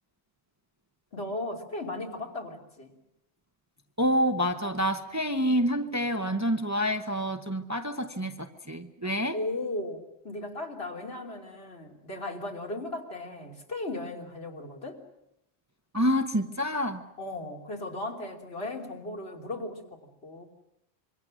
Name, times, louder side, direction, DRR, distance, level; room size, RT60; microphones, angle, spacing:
voice 1, 1.1-2.9 9.0-15.0 17.2-20.4, left 2 dB, 60° left, 0 dB, 3.4 m, -36 dB
voice 2, 4.0-9.4 15.9-17.0, equal, 15° right, 6 dB, 0.9 m, -27 dB
26.0 x 24.0 x 6.4 m, 0.85 s
omnidirectional pair, 1.2 m